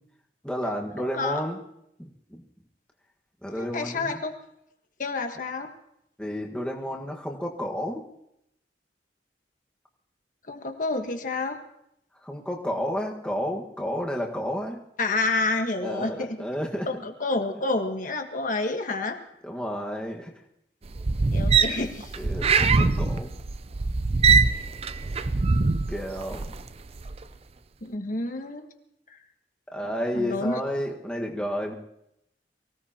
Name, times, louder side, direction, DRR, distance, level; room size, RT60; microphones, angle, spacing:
voice 1, 0.4-1.6 2.0-2.4 3.4-4.2 6.2-8.0 12.2-14.8 15.8-16.9 19.4-20.3 21.6-21.7 22.2-23.3 25.9-26.5 29.7-31.7, equal, 5° left, -1 dB, 1.6 m, -31 dB
voice 2, 1.0-1.4 3.6-4.3 5.0-5.7 10.5-11.5 15.0-16.4 16.9-19.2 21.3-22.1 27.8-28.7 30.1-30.6, left 3 dB, 50° left, 5 dB, 1.4 m, -29 dB
sound 1, 20.9-26.6 27.0-27.2, right 4 dB, 35° right, 0.5 m, -23 dB
24.0 x 16.5 x 2.9 m, 0.80 s
head